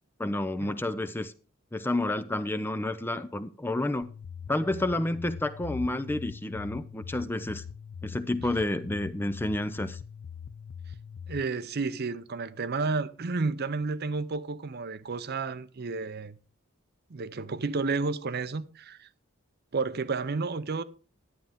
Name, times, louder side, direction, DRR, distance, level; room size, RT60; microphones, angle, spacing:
voice 1, 0.2-1.3 1.7-4.1 4.5-7.6 8.0-10.0, left 1 dB, 10° left, 0.4 m, -30 dB
sound 1, 4.0-11.4, left 7 dB, 85° left, 0.4 m, -42 dB
voice 2, 11.3-16.4 17.1-19.1 19.7-20.8, right 4 dB, 50° right, 0.6 m, -31 dB
11.5 x 9.1 x 3.6 m
head